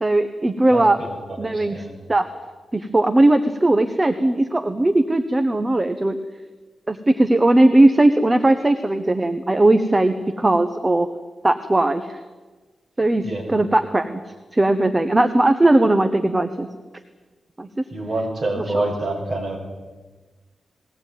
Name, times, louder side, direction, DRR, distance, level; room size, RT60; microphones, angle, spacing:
voice 1, 0.0-1.0 1.4-1.8 2.1-2.3 2.7-6.2 6.9-11.1 11.4-12.2 13.0-14.2 14.5-16.7 17.6-17.7 18.6-18.8, right 2 dB, 15° right, 9 dB, 0.9 m, -18 dB
voice 2, 0.7-1.9 13.2-13.5 17.9-19.6, right 2 dB, 35° right, 0 dB, 5.9 m, -27 dB
20.5 x 17.5 x 9.2 m, 1.3 s
wide cardioid pair, 160°, 0 cm